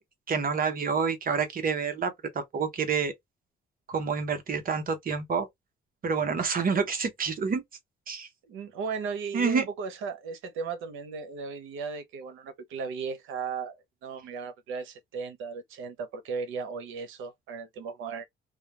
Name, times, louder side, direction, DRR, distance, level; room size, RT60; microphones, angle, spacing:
voice 1, 0.3-3.1 3.9-5.5 6.0-7.6 8.1-8.3 9.3-9.6, right 5 dB, 45° right, 0.9 m, -28 dB
voice 2, 8.4-18.2, right 5 dB, 90° right, 0.7 m, -36 dB
2.3 x 2.2 x 2.8 m
cardioid pair, 90°, 20 cm